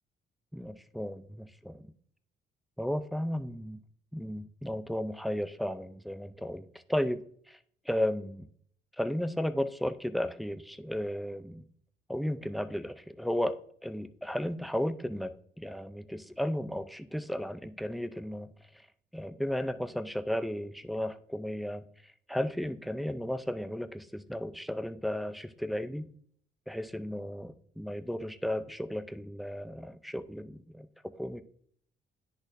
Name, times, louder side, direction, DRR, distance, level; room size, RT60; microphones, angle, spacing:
voice 1, 0.5-1.9 2.8-3.8 4.1-7.2 7.5-7.6 7.9-8.5 9.0-11.6 12.1-18.5 19.1-21.8 22.3-26.1 26.7-30.9 31.2-31.4, equal, ahead, 11 dB, 0.4 m, -34 dB
10.5 x 4.2 x 2.6 m, 0.62 s
cardioid pair, 90°, 20 cm